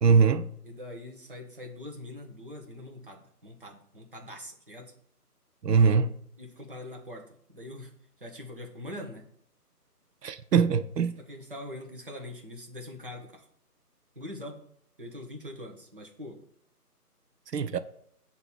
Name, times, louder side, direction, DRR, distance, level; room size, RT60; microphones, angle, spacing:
voice 1, 0.0-0.5 5.6-6.1 10.2-11.1 17.5-17.8, right 5 dB, 85° right, 0.6 m, -22 dB
voice 2, 0.6-4.9 6.4-7.9 8.2-9.3 11.2-13.4 14.2-14.6 15.0-16.4, left 1 dB, 35° right, 0.9 m, -43 dB
7.7 x 2.9 x 6.1 m
figure-of-eight pair, 170°, 47 cm